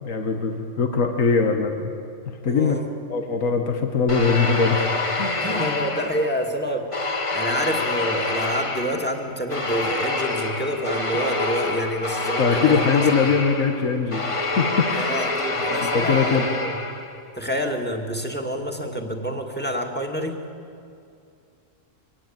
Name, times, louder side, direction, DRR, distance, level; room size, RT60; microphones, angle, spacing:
voice 1, 0.0-1.9 2.3-2.8 3.1-4.9 5.2-5.4 12.4-15.2 15.6-16.5, left 5 dB, 80° left, 4 dB, 1.9 m, -22 dB
voice 2, 2.5-2.9 5.4-6.9 7.3-12.8 13.2-13.3 15.0-16.8 17.4-20.4, equal, 5° left, 4 dB, 2.3 m, -28 dB
sound 1, 4.1-6.5 6.9-17.2, left 2 dB, 25° left, 1.3 m, -27 dB
24.5 x 18.0 x 9.0 m, 2.5 s
omnidirectional pair, 1.4 m